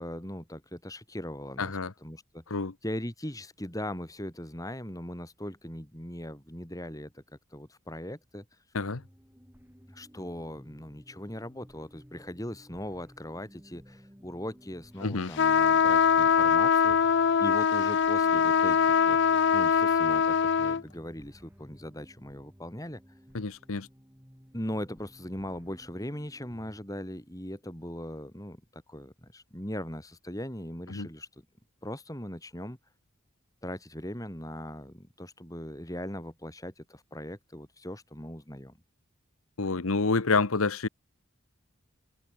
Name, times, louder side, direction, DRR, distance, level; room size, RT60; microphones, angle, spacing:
voice 1, 0.0-7.2 7.5-8.6 9.9-19.2 19.5-23.0 24.5-31.3 31.8-32.8 33.6-38.7, left 1 dB, 15° left, 4.7 m, -39 dB
voice 2, 1.6-1.9 2.5-2.7 8.7-9.0 15.0-15.3 23.3-23.9 30.9-31.1 39.6-40.9, left 4 dB, 85° left, 1.1 m, -28 dB
sound 1, 8.7-26.8, equal, 10° right, 7.9 m, -55 dB
sound 2, 15.4-20.8, left 7 dB, 55° left, 0.4 m, -23 dB
head